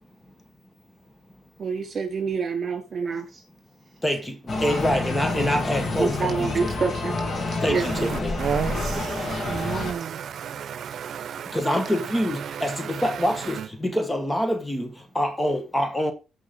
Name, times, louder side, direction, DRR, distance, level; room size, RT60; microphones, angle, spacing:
voice 1, 1.6-3.4 6.0-8.1, right 5 dB, 45° right, 3.9 m, -28 dB
voice 2, 4.0-6.7 7.6-8.4 11.5-16.1, equal, 15° left, 1.7 m, -26 dB
sound 1, 4.5-9.9, left 2 dB, 40° left, 3.5 m, -28 dB
voice 3, 7.8-13.3 13.5-13.7, right 8 dB, 60° right, 0.9 m, -32 dB
14.5 x 5.4 x 3.9 m
cardioid pair, 90°, 0 cm